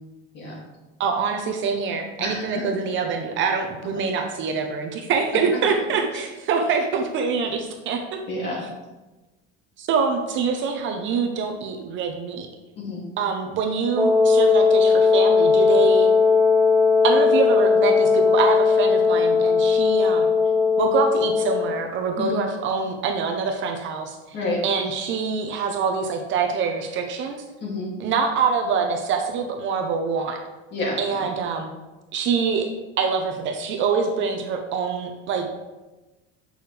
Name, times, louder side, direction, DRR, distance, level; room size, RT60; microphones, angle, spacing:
voice 1, 1.0-8.2 9.8-12.5 13.2-16.1 17.0-20.3 20.8-24.4 24.6-27.4 28.0-30.4 31.0-31.7 32.1-32.7 33.0-35.5, right 5 dB, 40° right, 3 dB, 0.8 m, -25 dB
voice 2, 2.2-2.6 6.1-6.2 8.3-8.7 12.8-13.1 22.2-22.4 24.3-24.6 27.6-27.9 30.7-31.0, left 2 dB, 35° left, -4 dB, 2.6 m, -29 dB
Wind instrument woodwind instrument, 14.0-21.8, left 5 dB, 5° right, 0.4 m, -18 dB
8.6 x 6.3 x 3.4 m, 1.1 s
cardioid pair, 165°, 30 cm